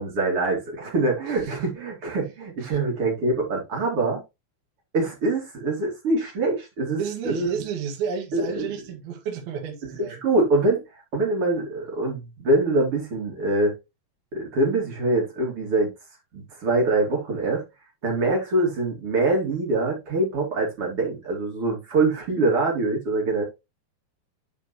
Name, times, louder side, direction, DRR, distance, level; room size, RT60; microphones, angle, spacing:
voice 1, 0.0-4.2 4.9-7.5 8.3-8.7 10.0-13.7 14.3-15.9 16.3-17.6 18.0-23.4, right 2 dB, 35° right, 2.6 m, -24 dB
voice 2, 7.0-10.3, right 6 dB, 60° right, 3.4 m, -31 dB
11.0 x 4.6 x 3.1 m
omnidirectional pair, 5.3 m